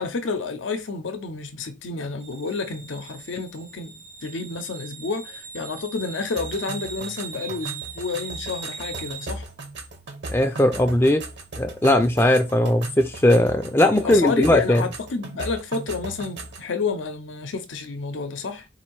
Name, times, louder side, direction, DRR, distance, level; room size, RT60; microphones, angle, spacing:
voice 1, 0.0-9.5 14.0-18.7, left 4 dB, 85° left, 0.6 m, -30 dB
sound 1, 2.2-9.3, right 5 dB, 80° right, 1.8 m, -39 dB
sound 2, 6.4-16.7, right 2 dB, 65° right, 1.0 m, -38 dB
voice 2, 10.3-11.2 11.6-14.8, left 1 dB, 15° left, 0.4 m, -19 dB
4.1 x 2.6 x 4.5 m
head